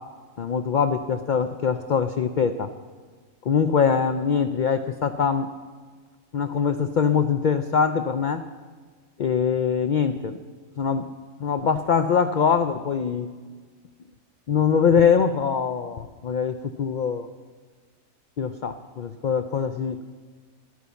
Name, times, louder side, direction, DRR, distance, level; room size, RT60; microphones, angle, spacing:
voice 1, 0.4-2.7 3.4-5.5 6.3-8.4 9.2-10.4 10.8-11.1 11.4-13.3 14.5-17.3 18.4-20.0, left 6 dB, 80° left, 9 dB, 0.4 m, -23 dB
12.0 x 9.4 x 7.0 m, 1.5 s
omnidirectional pair, 1.4 m